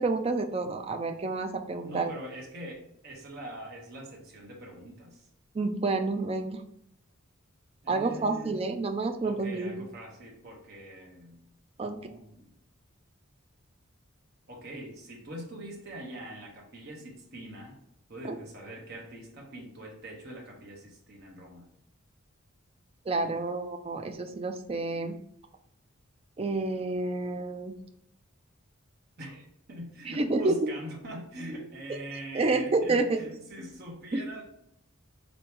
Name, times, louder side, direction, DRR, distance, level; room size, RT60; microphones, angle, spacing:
voice 1, 0.0-2.1 5.5-6.6 7.9-9.9 11.8-12.0 18.2-18.4 23.1-25.2 26.4-27.8 30.2-30.7 32.3-33.2 34.1-34.4, right 3 dB, 25° right, 5 dB, 0.4 m, -29 dB
voice 2, 1.8-5.3 7.8-8.7 9.2-11.5 11.8-12.5 14.5-17.8 18.1-21.7 23.2-23.5 29.2-34.4, right 1 dB, 50° right, -1 dB, 1.1 m, -43 dB
3.8 x 3.0 x 3.5 m, 0.75 s
head